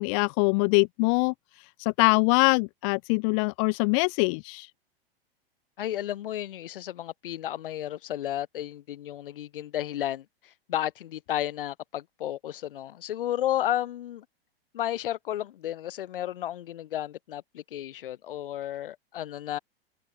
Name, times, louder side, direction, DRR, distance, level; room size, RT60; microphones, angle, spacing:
voice 1, 0.0-1.3 1.8-4.7, left 34 dB, 35° left, 0.5 m, -23 dB
voice 2, 5.8-14.2 14.7-19.6, left 12 dB, 60° left, 0.9 m, -33 dB
open air
figure-of-eight pair, 100°, 30 cm